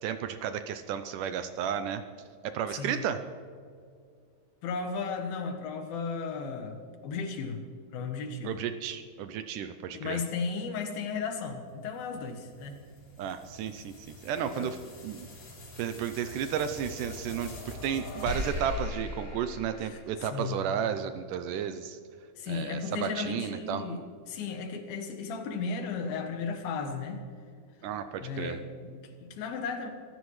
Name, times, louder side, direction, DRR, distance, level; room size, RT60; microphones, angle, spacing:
voice 1, 0.0-2.0 2.4-3.2 8.4-10.2 13.2-14.8 15.0-15.3 15.8-22.0 22.5-23.8 27.8-28.6, right 8 dB, 80° right, 9 dB, 2.0 m, -33 dB
voice 2, 2.7-3.0 4.6-7.6 7.9-8.6 9.9-12.8 14.5-14.7 19.8-20.0 20.3-20.7 22.4-24.0 24.3-27.3 28.2-29.9, left 5 dB, 80° left, 5 dB, 3.3 m, -35 dB
sound 1, 11.8-20.4, left 2 dB, 50° left, 5.0 m, -41 dB
23.5 x 15.5 x 3.2 m, 2.2 s
omnidirectional pair, 4.2 m